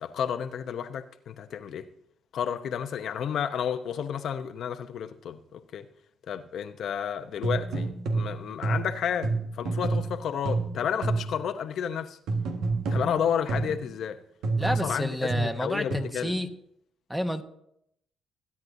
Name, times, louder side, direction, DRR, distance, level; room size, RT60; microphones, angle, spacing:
voice 1, 0.0-1.9 2.3-5.8 6.3-12.2 12.9-14.2 14.6-16.4, left 8 dB, 70° left, 0.8 m, -31 dB
sound 1, 7.4-11.5 12.3-13.9 14.4-16.0, right 3 dB, 80° right, 1.6 m, -29 dB
voice 2, 14.6-16.5 17.1-17.4, equal, 5° right, 1.2 m, -30 dB
21.0 x 9.7 x 2.7 m
cardioid pair, 90°, 0 cm